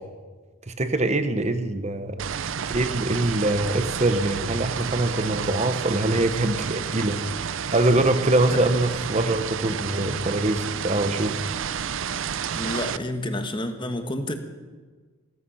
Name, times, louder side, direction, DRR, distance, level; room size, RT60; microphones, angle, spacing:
voice 1, 0.7-2.2 2.7-11.4, right 2 dB, 30° right, 9 dB, 1.0 m, -24 dB
sound 1, 2.2-13.0, right 7 dB, 65° right, 0.5 m, -30 dB
voice 2, 12.5-14.3, left 1 dB, 25° left, 7 dB, 1.3 m, -29 dB
16.5 x 14.0 x 5.7 m, 1.4 s
head